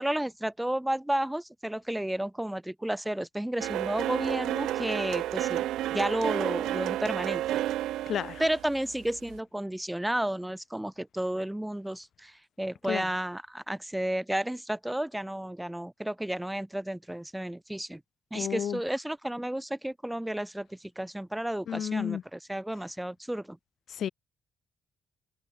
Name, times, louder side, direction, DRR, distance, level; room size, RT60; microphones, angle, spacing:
voice 1, 0.0-7.6 8.4-18.0 18.3-23.6, right 1 dB, 5° right, 2.4 m, -32 dB
sound 1, 3.6-9.4, right 14 dB, 85° right, 0.4 m, -31 dB
voice 2, 8.1-8.4 12.9-13.1 18.3-18.8 21.7-22.2 23.9-24.1, left 9 dB, 65° left, 0.4 m, -31 dB
cardioid pair, 90°, 0 cm